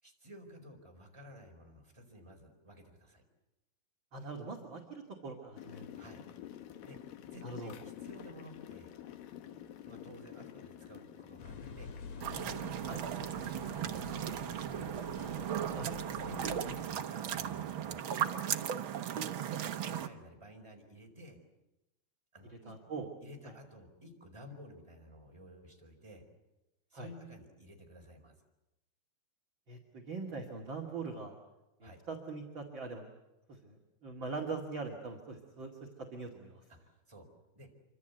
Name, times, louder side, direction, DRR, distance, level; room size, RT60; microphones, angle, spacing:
voice 1, 0.0-3.2 6.0-6.2 6.8-7.0 7.3-8.9 9.8-11.9 12.3-14.9 16.2-18.4 19.1-19.3 19.7-21.4 22.3-22.8 23.2-26.2 26.9-28.3 31.8-32.0 36.7-37.3 37.5-37.7, equal, 10° right, 2 dB, 4.3 m, -53 dB
voice 2, 4.1-5.9 7.4-7.7 12.9-13.0 15.7-16.0 22.6-23.1 26.9-27.1 29.7-31.3 31.8-33.1 33.5-35.7 36.1-36.6, right 3 dB, 35° right, 0 dB, 2.8 m, -42 dB
sound 1, 5.5-12.5, left 11 dB, 85° left, 3.0 m, -49 dB
sound 2, 11.4-16.8, left 4 dB, 55° left, 3.4 m, -48 dB
sound 3, 12.2-20.1, right 9 dB, 90° right, 1.1 m, -36 dB
27.0 x 25.0 x 8.2 m, 1.0 s
omnidirectional pair, 4.0 m